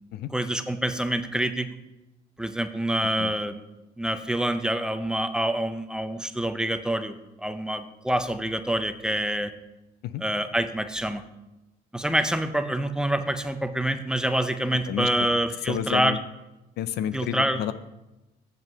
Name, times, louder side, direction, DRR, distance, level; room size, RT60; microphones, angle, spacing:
voice 1, 0.3-1.7 2.4-3.6 4.0-9.5 10.2-11.2 11.9-16.2 17.1-17.6, right 1 dB, 5° right, 9 dB, 0.6 m, -26 dB
voice 2, 15.7-16.2 16.8-17.7, left 10 dB, 75° left, 14 dB, 0.5 m, -30 dB
7.9 x 7.2 x 5.5 m, 1.0 s
cardioid pair, 110°, 17 cm